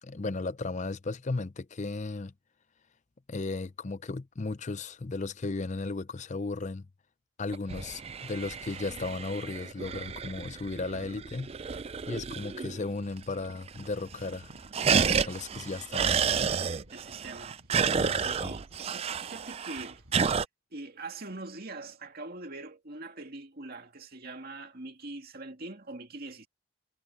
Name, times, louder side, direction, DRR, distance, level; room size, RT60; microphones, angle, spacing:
voice 1, 0.0-2.3 3.3-6.9 7.4-11.5 12.1-16.2 17.9-18.5, left 3 dB, 35° left, 0.5 m, -35 dB
sound 1, 7.5-12.8 13.2-13.3 13.5-14.0 14.3-20.4, right 6 dB, 25° right, 0.3 m, -30 dB
sound 2, 14.1-20.2, equal, 65° right, 4.8 m, -58 dB
voice 2, 16.9-17.6 18.0-20.0 20.3-20.4 20.7-26.5, right 2 dB, 45° right, 2.4 m, -43 dB
head